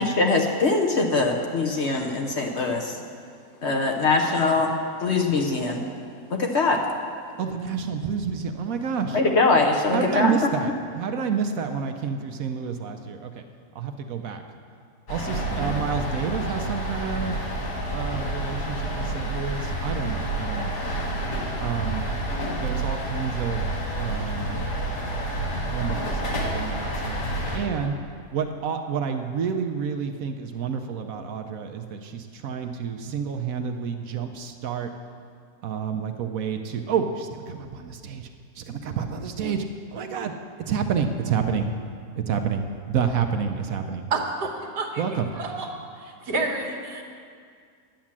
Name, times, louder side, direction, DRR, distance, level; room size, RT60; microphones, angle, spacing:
voice 1, 0.0-3.0 3.6-4.7 5.0-5.9 6.3-6.8 9.1-10.3, left 3 dB, 50° left, 2 dB, 1.0 m, -22 dB
voice 2, 7.4-9.2 9.9-13.4 13.7-14.4 15.1-17.4 17.7-20.8 21.6-22.0 22.6-23.7 23.9-24.6 25.6-26.2 26.5-27.2 27.5-28.0 28.3-34.9 35.6-38.3 38.6-40.3 40.7-41.7 42.2-44.1 45.0-45.3, right 6 dB, 65° right, 6 dB, 1.0 m, -29 dB
sound 1, 15.1-27.6, right 1 dB, 80° left, 2.3 m, -29 dB
voice 3, 44.1-45.0 45.3-45.7 46.0-47.0, right 3 dB, 80° right, 2 dB, 1.8 m, -29 dB
10.5 x 8.6 x 7.3 m, 2.2 s
omnidirectional pair, 1.8 m